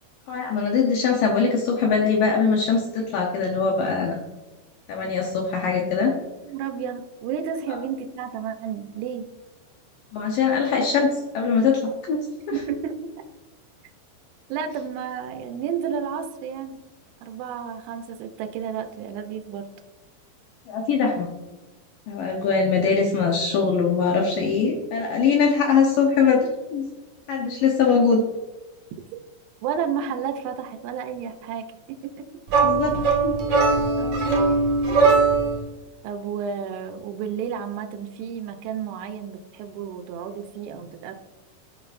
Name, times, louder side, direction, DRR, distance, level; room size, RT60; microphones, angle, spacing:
voice 1, 0.3-4.2 4.9-6.1 10.1-12.2 12.5-12.6 20.7-21.3 22.1-26.9 27.3-28.2 32.6-32.9 33.2-33.4, left 5 dB, 80° left, -1 dB, 1.9 m, -22 dB
voice 2, 6.5-9.3 12.5-13.1 14.5-16.8 17.2-19.7 29.6-32.4 34.0-34.5 36.0-41.1, right 7 dB, 80° right, 5 dB, 2.6 m, -31 dB
sound 1, 32.5-35.6, right 4 dB, 60° right, 1.9 m, -20 dB
14.0 x 5.8 x 2.6 m, 1.1 s
omnidirectional pair, 5.3 m